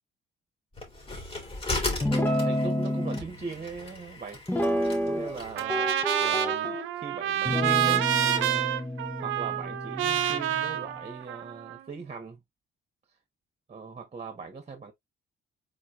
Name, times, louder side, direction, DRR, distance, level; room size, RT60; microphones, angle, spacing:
sound 1, 0.8-5.7, left 2 dB, 30° left, 2.3 m, -36 dB
Guitar, 2.0-3.2 4.5-5.4 5.7-6.9 7.5-10.9, left 1 dB, 10° left, 1.0 m, -29 dB
voice 1, 2.4-4.4 5.0-8.7 9.2-12.4 13.7-14.9, right 4 dB, 35° right, 1.5 m, -40 dB
Trumpet, 5.6-11.8, right 11 dB, 85° right, 0.8 m, -28 dB
4.4 x 4.1 x 2.6 m
cardioid pair, 90°, 20 cm